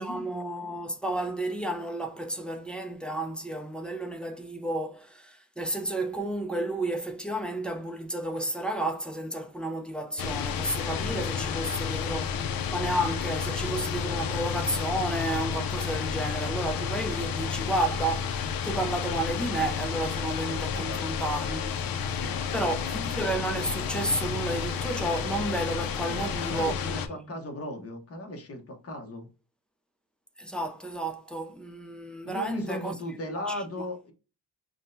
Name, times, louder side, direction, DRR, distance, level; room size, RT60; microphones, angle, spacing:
voice 1, 0.0-21.9 22.5-27.2 30.4-32.9 33.4-33.6, right 1 dB, 5° left, 0.3 m, -32 dB
sound 1, 10.2-27.1, left 7 dB, 60° left, 0.5 m, -31 dB
voice 2, 20.7-21.3 22.2-22.5 26.0-29.3 32.2-34.1, left 1 dB, 35° left, 0.9 m, -37 dB
5.9 x 2.1 x 2.5 m
wide cardioid pair, 180°, 40 cm